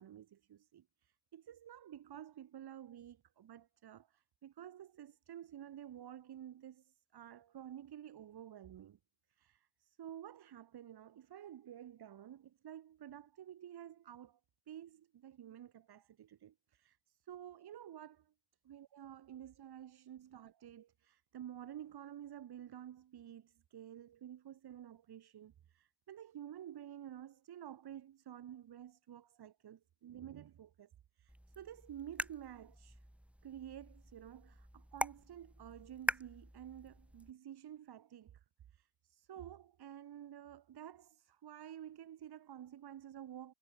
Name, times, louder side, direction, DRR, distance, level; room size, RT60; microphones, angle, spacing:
voice 1, 0.0-9.0 9.3-14.4 14.7-18.3 18.6-30.9 31.2-33.0 33.4-38.4 38.7-43.5, right 10 dB, 55° right, 7.6 m, -51 dB
sound 1, 31.3-37.3, equal, 5° right, 5.6 m, -44 dB
supercardioid pair, 75°, 46 cm